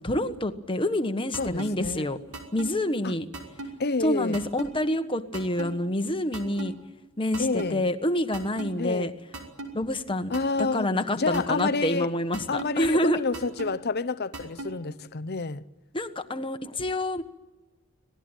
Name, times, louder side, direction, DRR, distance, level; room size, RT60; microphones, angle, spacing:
voice 1, 0.0-2.2 2.5-3.3 4.0-6.7 7.2-9.1 9.7-10.3 10.6-13.2 15.9-17.2, left 1 dB, 25° left, 1.4 m, -27 dB
sound 1, 1.3-1.7 2.3-2.7 3.3-3.7 4.3-4.7 5.3-5.7 6.3-6.7 7.3-7.7 8.3-8.7 9.3-9.7 10.3-10.7 11.3-11.7 12.3-12.7 13.3-13.7 14.3-14.7, right 2 dB, 85° right, 5.7 m, -36 dB
voice 2, 1.4-2.1 3.0-3.1 3.8-4.4 7.4-7.8 8.8-9.1 10.3-10.9 11.2-12.1 12.5-15.6, left 3 dB, 45° left, 0.8 m, -29 dB
26.0 x 18.5 x 9.1 m
head